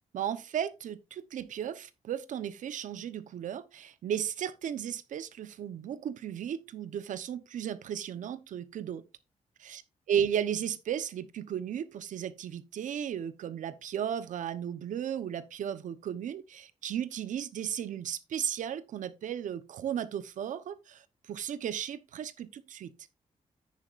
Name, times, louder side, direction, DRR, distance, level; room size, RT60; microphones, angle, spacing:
voice 1, 0.1-9.0 9.6-9.8 10.1-21.0 21.3-22.9, right 9 dB, 85° right, 0.9 m, -35 dB
9.9 x 9.5 x 2.5 m
wide cardioid pair, 175°, 13 cm